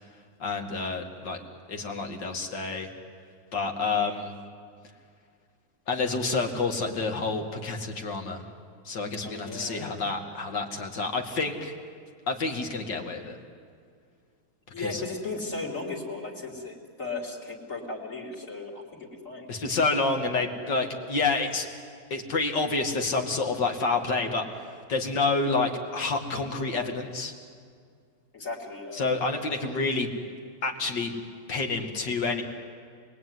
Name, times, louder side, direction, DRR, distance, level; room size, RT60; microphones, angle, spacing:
voice 1, 0.4-1.4 1.7-2.9 3.5-4.3 5.9-8.4 8.8-11.7 12.3-13.4 14.8-15.0 19.5-21.7 22.1-24.5 24.9-27.3 28.9-30.1 30.6-31.1 31.5-32.4, left 3 dB, 65° left, 4 dB, 2.8 m, -28 dB
voice 2, 9.2-10.0 14.7-19.5 28.3-29.0, left 3 dB, 40° left, 2 dB, 3.6 m, -36 dB
28.0 x 20.5 x 9.5 m, 2.2 s
omnidirectional pair, 2.1 m